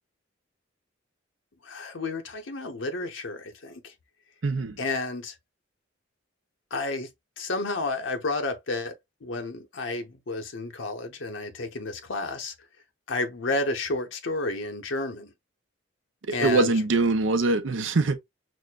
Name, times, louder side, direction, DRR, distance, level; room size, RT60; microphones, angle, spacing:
voice 1, 1.6-3.9 4.8-5.3 6.7-7.1 7.4-8.9 9.2-12.5 13.1-15.3 16.3-16.7, left 2 dB, 85° left, 0.9 m, -31 dB
voice 2, 4.4-4.8 16.3-18.2, right 3 dB, 80° right, 0.7 m, -23 dB
6.2 x 2.1 x 2.3 m
head